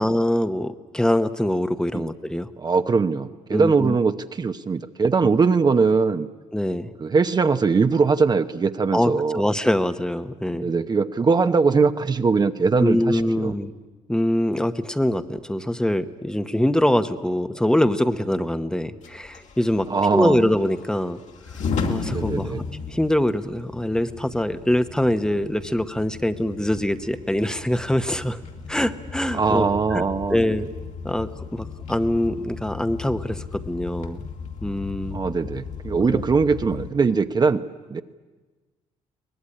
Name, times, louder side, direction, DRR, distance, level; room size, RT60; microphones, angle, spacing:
voice 1, 0.0-2.5 3.5-3.9 6.5-6.9 8.9-10.7 12.8-13.7 14.1-19.9 20.1-21.2 21.9-22.5 22.9-28.4 28.7-30.0 30.3-30.7 31.0-34.2 34.6-35.2 36.0-36.2, left 1 dB, 5° left, 10 dB, 1.0 m, -23 dB
voice 2, 2.6-6.3 7.0-9.4 10.5-13.5 19.9-20.4 22.1-22.6 29.3-30.5 35.1-37.6 37.9-38.0, right 4 dB, 30° right, 9 dB, 0.9 m, -21 dB
sound 1, 19.0-36.9, left 5 dB, 65° left, 2.6 m, -35 dB
23.0 x 19.0 x 10.0 m, 1.3 s
cardioid pair, 100°, 13 cm